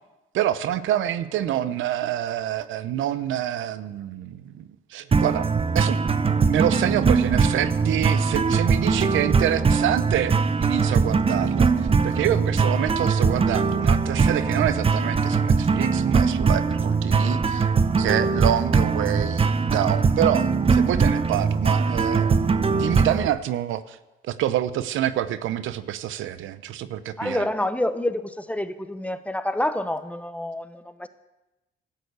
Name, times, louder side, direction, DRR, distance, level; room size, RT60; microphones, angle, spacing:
voice 1, 0.3-5.5 5.7-10.3 10.6-11.7 12.0-24.0 24.2-27.5, right 11 dB, 85° right, 14 dB, 0.8 m, -27 dB
sound 1, 5.1-23.3, right 5 dB, 30° right, 0.8 m, -21 dB
voice 2, 27.2-31.1, left 1 dB, 5° left, 11 dB, 0.9 m, -28 dB
13.0 x 9.2 x 8.1 m, 1.0 s
cardioid pair, 90°, 20 cm